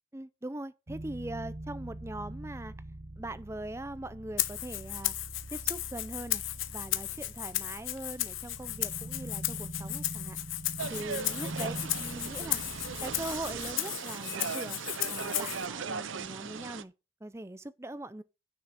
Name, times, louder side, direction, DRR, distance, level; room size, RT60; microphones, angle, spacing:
voice 1, 0.1-2.7 3.2-5.1 5.5-6.4 6.7-10.4 10.9-12.6 13.0-14.8 15.1-16.9 17.2-18.2, right 1 dB, 15° right, 0.5 m, -41 dB
sound 1, 0.9-13.7, right 1 dB, 40° right, 0.9 m, -44 dB
Rattle (instrument), 4.4-15.7, left 16 dB, 85° left, 0.9 m, -35 dB
sound 2, 10.8-16.8, right 5 dB, 80° right, 0.8 m, -38 dB
9.5 x 6.3 x 5.5 m
head